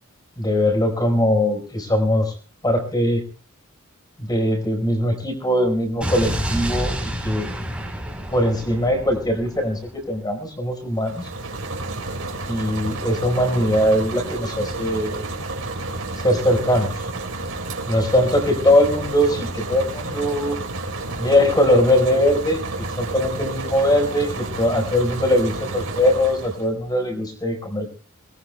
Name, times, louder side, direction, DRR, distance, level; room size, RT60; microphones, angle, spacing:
voice 1, 0.4-2.3 2.6-3.2 4.2-7.5 8.3-11.3 12.5-15.3 16.2-16.9 17.9-20.6 21.2-27.9, left 1 dB, 20° left, 4 dB, 4.6 m, -21 dB
Explosion, 6.0-10.1, equal, 5° right, 4.2 m, -29 dB
sound 1, 10.9-26.7, right 2 dB, 75° right, 4.3 m, -30 dB
26.5 x 20.5 x 2.3 m, 0.37 s
head